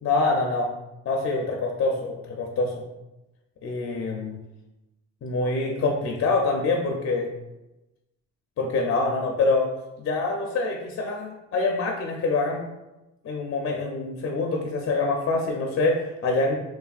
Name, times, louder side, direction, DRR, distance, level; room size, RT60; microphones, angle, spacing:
voice 1, 0.0-0.7 1.1-2.8 3.6-4.4 5.2-7.3 8.6-9.7 10.0-12.6 13.2-16.6, left 3 dB, 45° left, 1 dB, 0.4 m, -25 dB
3.2 x 2.2 x 2.4 m, 0.96 s
cardioid pair, 85°, 34 cm